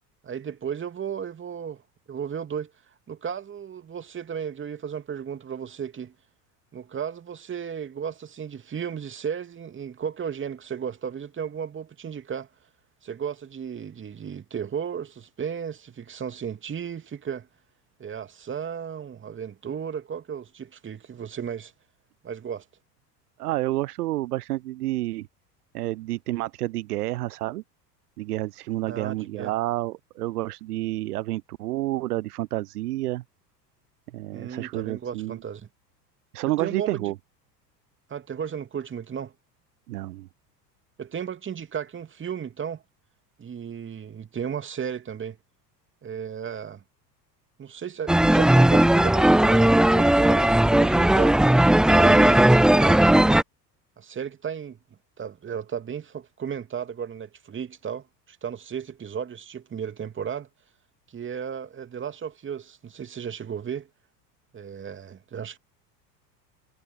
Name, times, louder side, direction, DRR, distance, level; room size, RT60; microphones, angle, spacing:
voice 1, 0.2-1.8 2.1-2.7 3.1-6.1 6.7-12.5 13.0-17.5 18.0-21.7 22.2-22.6 28.9-29.5 34.3-35.7 36.6-37.1 38.1-39.3 41.0-42.8 43.4-45.4 46.0-46.8 47.6-51.4 51.9-53.3 54.0-54.8 55.2-60.5 61.1-63.9 64.5-65.6, right 7 dB, 25° right, 2.7 m, -34 dB
voice 2, 23.4-25.3 25.7-27.6 28.2-33.2 34.1-35.4 36.3-37.1 39.9-40.3, right 17 dB, 65° right, 0.8 m, -29 dB
sound 1, 48.1-53.4, right 1 dB, ahead, 0.5 m, -17 dB
figure-of-eight pair, 75°, 50 cm